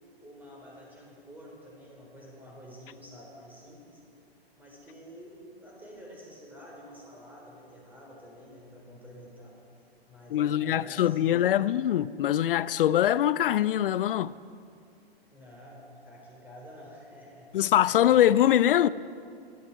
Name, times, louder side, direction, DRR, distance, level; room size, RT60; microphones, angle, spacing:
voice 1, 0.2-4.0 4.6-9.6 10.1-11.8 15.3-17.6 17.8-18.3, equal, 5° right, 4.2 m, -49 dB
voice 2, 10.3-14.3 17.5-18.9, left 11 dB, 60° left, 0.5 m, -23 dB
20.5 x 13.0 x 4.7 m
hypercardioid pair, 120°, 31 cm